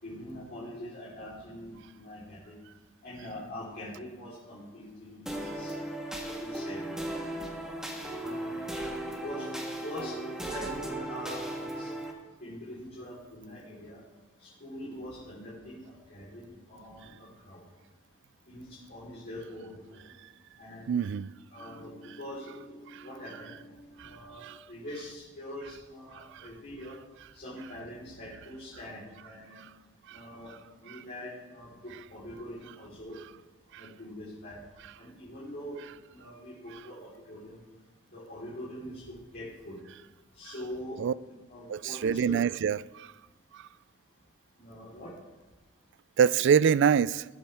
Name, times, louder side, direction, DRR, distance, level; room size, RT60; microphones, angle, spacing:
voice 1, 0.0-2.5 3.0-5.7 6.2-6.8 8.2-8.5 9.1-9.5 9.8-10.1 10.5-11.9 12.4-14.0 14.6-17.6 18.5-18.6 18.9-20.0 20.6-21.2 21.5-26.9 27.3-29.6 30.1-30.5 30.8-31.7 32.1-33.2 33.8-34.6 35.0-35.8 36.1-37.6 38.1-39.0 39.3-39.8 40.4-41.0 41.3-42.4 44.6-45.1, left 1 dB, 50° left, 3.9 m, -43 dB
sound 1, 5.3-12.1, right 1 dB, 5° right, 1.5 m, -36 dB
voice 2, 20.9-21.3 23.3-23.4 24.0-24.1 24.4-24.6 26.3-26.5 30.1-30.2 31.9-32.0 36.7-36.8 41.0-41.1 41.7-43.1 46.2-47.2, right 7 dB, 60° right, 0.3 m, -25 dB
20.0 x 8.7 x 3.5 m
head